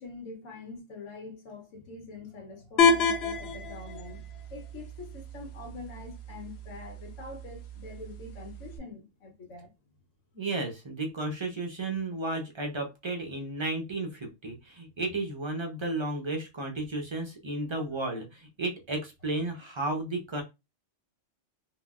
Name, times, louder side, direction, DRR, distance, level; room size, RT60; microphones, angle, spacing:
voice 1, 0.0-4.2 4.5-9.7 18.1-18.2, left 3 dB, 90° left, 1.2 m, -44 dB
sound 1, 2.8-8.8, left 4 dB, 65° left, 0.8 m, -30 dB
voice 2, 10.3-20.4, right 2 dB, 35° right, 0.4 m, -33 dB
3.7 x 2.1 x 2.3 m
omnidirectional pair, 1.3 m